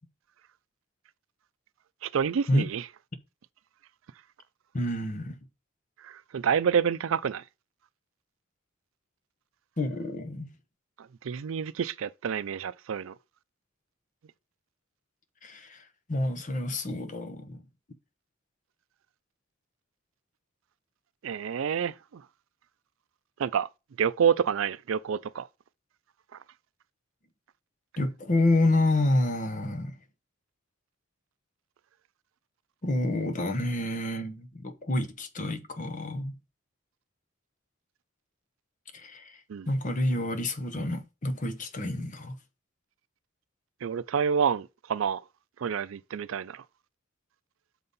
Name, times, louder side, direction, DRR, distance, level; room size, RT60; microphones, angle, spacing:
voice 1, 2.0-2.9 6.0-7.4 11.0-13.1 21.2-22.2 23.4-23.7 24.0-25.5 26.3-26.4 39.5-39.7 43.8-45.2 45.6-46.6, right 7 dB, 80° right, 0.4 m, -28 dB
voice 2, 4.7-5.4 9.8-10.5 15.4-15.8 16.1-17.6 28.0-30.0 32.8-36.4 38.9-39.4 39.7-42.4, left 1 dB, 40° left, 0.9 m, -28 dB
6.6 x 4.0 x 5.4 m
head